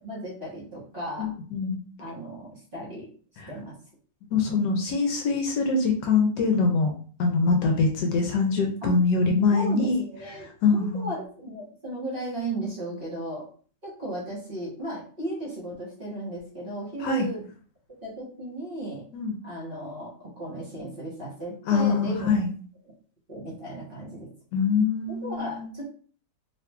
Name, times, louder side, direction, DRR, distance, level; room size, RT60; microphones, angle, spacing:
voice 1, 0.0-1.3 2.0-3.1 3.5-3.8 8.8-9.0 9.5-13.5 13.8-17.4 18.0-19.0 19.4-22.3 23.3-24.3 25.1-25.9, right 1 dB, 35° right, -6 dB, 1.2 m, -35 dB
voice 2, 1.2-1.8 3.4-3.5 4.3-6.9 7.2-10.0 10.6-11.1 17.0-17.3 19.1-19.4 21.7-22.5 24.5-25.7, left 4 dB, 75° left, 2 dB, 1.2 m, -23 dB
2.9 x 2.5 x 3.4 m, 0.43 s
omnidirectional pair, 2.0 m